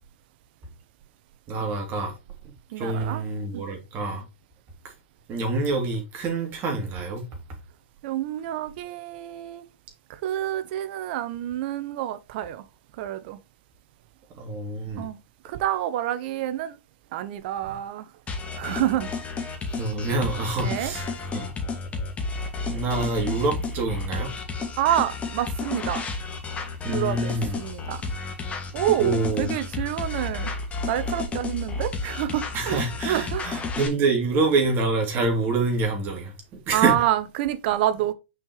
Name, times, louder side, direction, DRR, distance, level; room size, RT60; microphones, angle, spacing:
voice 1, 1.5-2.1 2.8-4.2 5.3-7.2 14.4-15.0 17.7-17.8 19.8-21.1 21.3-21.5 22.7-24.3 26.8-27.6 29.0-29.5 32.5-36.3 36.7-36.9, right 3 dB, 35° right, 3.0 m, -26 dB
voice 2, 2.7-3.2 3.5-3.6 8.0-9.6 10.2-12.6 13.0-13.4 15.0-15.2 15.4-16.8 17.1-18.1 18.6-19.1 20.6-20.9 24.8-26.0 26.9-28.0 28.7-30.5 30.9-33.4 36.7-38.1, right 12 dB, 55° right, 0.9 m, -27 dB
sound 1, 18.3-33.9, left 4 dB, 20° left, 2.1 m, -32 dB
6.2 x 5.4 x 3.2 m
hypercardioid pair, 125°, 7 cm